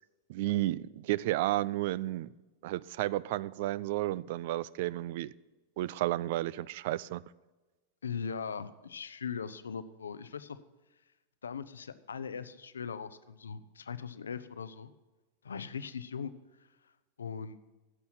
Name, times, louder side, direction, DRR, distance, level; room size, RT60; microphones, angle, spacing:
voice 1, 0.3-2.3 2.6-5.3 5.8-7.2, right 16 dB, 50° right, 21 dB, 0.3 m, -32 dB
voice 2, 8.0-10.6 11.4-14.9 15.4-16.3 17.2-17.6, left 6 dB, 70° left, 13 dB, 0.6 m, -39 dB
16.0 x 7.0 x 6.0 m, 1.2 s
figure-of-eight pair, 90°, 0 cm